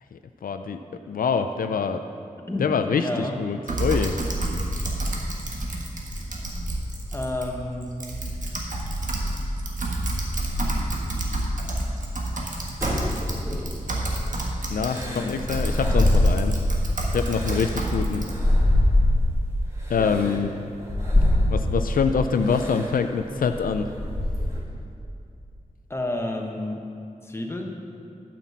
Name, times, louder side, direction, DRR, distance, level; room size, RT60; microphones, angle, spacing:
voice 1, 0.1-0.8 1.1-2.0 2.6-4.2 14.7-16.5 17.1-18.2 19.9-20.5 21.5-23.9, left 5 dB, 90° left, 7 dB, 0.4 m, -25 dB
voice 2, 2.5-3.4 7.1-7.8 15.0-15.5 20.0-20.4 25.9-26.8 27.2-27.7, left 1 dB, 20° left, 1 dB, 1.2 m, -31 dB
Typing, 3.7-18.3, right 1 dB, 65° right, 1.5 m, -29 dB
sound 1, 12.8-14.0 14.8-16.8 17.2-19.5 20.1-20.2 20.8-22.0 22.5-22.9 23.3-24.6, left 1 dB, 20° right, 2.4 m, -23 dB
9.0 x 6.0 x 7.2 m, 2.5 s
wide cardioid pair, 70°, 14 cm